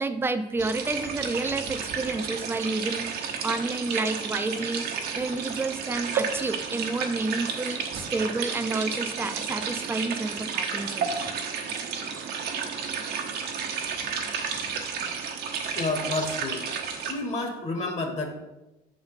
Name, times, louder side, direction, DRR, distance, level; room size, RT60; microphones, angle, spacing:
voice 1, 0.0-11.4 11.9-12.1, right 3 dB, 15° right, 9 dB, 0.5 m, -30 dB
sound 1, 0.6-17.1, right 6 dB, 75° right, 1.1 m, -32 dB
voice 2, 15.7-16.6 17.1-18.4, left 2 dB, 40° left, 4 dB, 1.3 m, -30 dB
6.9 x 4.1 x 5.2 m, 0.99 s
cardioid pair, 110°, 17 cm